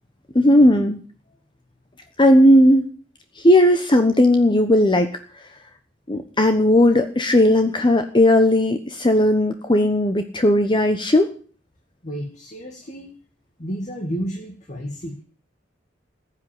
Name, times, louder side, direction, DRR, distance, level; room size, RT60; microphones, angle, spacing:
voice 1, 0.3-1.0 2.2-2.9 3.4-5.1 6.1-11.3, left 1 dB, 25° left, 7 dB, 1.2 m, -16 dB
voice 2, 12.0-13.2 13.6-15.2, equal, 40° left, 2 dB, 2.5 m, -31 dB
15.5 x 8.9 x 9.5 m, 0.42 s
head